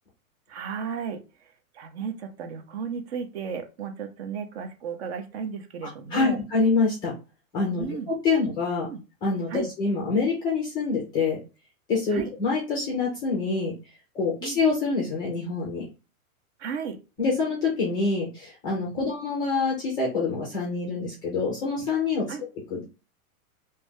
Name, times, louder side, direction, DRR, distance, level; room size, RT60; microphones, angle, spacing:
voice 1, 0.5-6.4 7.8-8.1 8.9-9.0 9.5-9.7 12.1-12.3 14.4-14.6 16.6-17.0 19.0-19.1 22.3-22.4, right 6 dB, 45° right, 7 dB, 0.7 m, -34 dB
voice 2, 6.1-7.1 7.5-8.9 9.2-11.4 11.9-13.7 14.1-15.8 17.2-22.3 22.7-22.8, left 4 dB, 10° left, -3 dB, 0.4 m, -26 dB
2.7 x 2.5 x 3.6 m, 0.31 s
hypercardioid pair, 150°, 44 cm